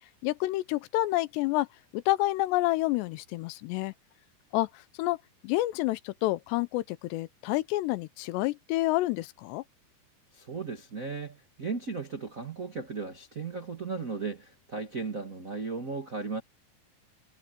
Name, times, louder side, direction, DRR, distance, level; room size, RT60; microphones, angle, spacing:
voice 1, 0.2-1.7 1.9-3.9 4.5-5.2 5.4-9.6, left 18 dB, 85° left, 2.8 m, -29 dB
voice 2, 10.3-16.4, right 4 dB, 45° right, 1.0 m, -36 dB
omnidirectional pair, 5.1 m